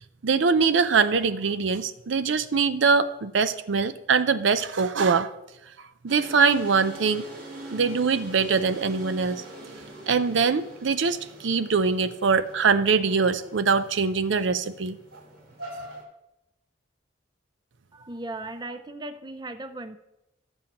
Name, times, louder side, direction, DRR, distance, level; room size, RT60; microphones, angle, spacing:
voice 1, 0.2-5.3 6.0-7.2 7.7-9.4 10.1-15.0, right 5 dB, 70° right, 12 dB, 0.5 m, -23 dB
sound 1, 6.1-16.0, right 1 dB, 50° right, 3.6 m, -43 dB
voice 2, 17.9-20.0, right 2 dB, 20° right, 10 dB, 0.5 m, -37 dB
17.5 x 7.2 x 3.0 m, 0.93 s
head